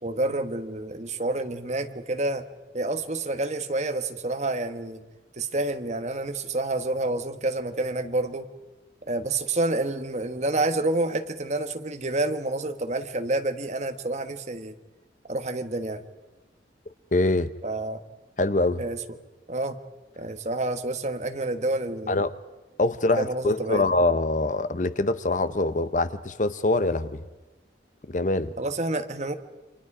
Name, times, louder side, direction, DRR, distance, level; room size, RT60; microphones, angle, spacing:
voice 1, 0.0-2.4 2.7-5.0 5.3-8.5 9.0-14.7 15.3-16.0 17.6-18.0 18.8-19.0 19.5-19.8 20.2-22.2 23.2-23.8 28.6-29.4, right 2 dB, 40° right, 1.4 m, -28 dB
voice 2, 17.1-17.5 18.4-18.8 22.1-22.3 22.8-27.2 28.1-28.5, left 2 dB, 45° left, 0.8 m, -24 dB
29.0 x 26.0 x 5.0 m
head